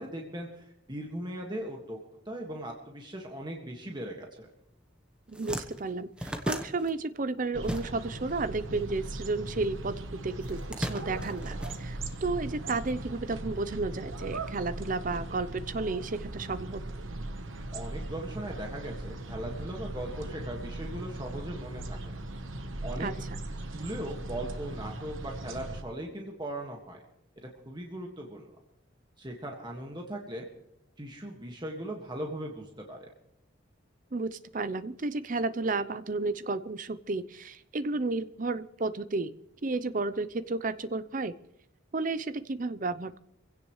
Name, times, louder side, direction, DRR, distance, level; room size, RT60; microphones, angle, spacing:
voice 1, 0.0-2.0 2.3-4.5 17.7-22.2 22.8-23.1 23.7-27.0 27.6-28.5 29.2-30.5 31.0-33.1, right 1 dB, 25° right, 0 dB, 1.8 m, -39 dB
sound 1, 4.7-4.9 5.1-8.3 8.6-9.8 10.4-12.4, equal, 5° right, 1.1 m, -37 dB
voice 2, 5.3-16.8 23.0-23.1 34.1-39.3 39.6-41.3 41.9-43.2, right 3 dB, 45° right, 14 dB, 0.6 m, -32 dB
sound 2, 7.5-25.8, right 2 dB, 90° right, 1.2 m, -39 dB
25.0 x 16.5 x 3.2 m, 0.82 s
head